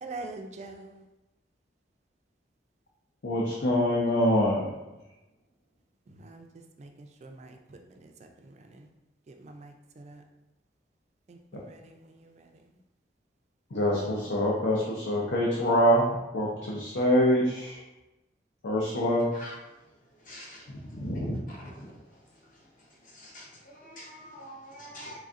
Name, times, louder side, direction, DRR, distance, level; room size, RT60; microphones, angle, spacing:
voice 1, 0.0-1.0 6.2-6.5 6.8-6.9 7.2-7.6 8.0-8.3 8.7-8.9 9.3-10.2 11.3-11.4 11.7-12.5, right 3 dB, 40° right, 0.3 m, -44 dB
voice 2, 3.2-4.7 11.5-11.6 13.7-17.8 18.6-19.3 20.7-21.7, equal, 85° left, 0.6 m, -25 dB
voice 3, 20.3-20.6 21.8-21.9 23.2-23.5 23.8-25.2, equal, 50° left, 0.8 m, -45 dB
3.9 x 3.3 x 2.5 m
head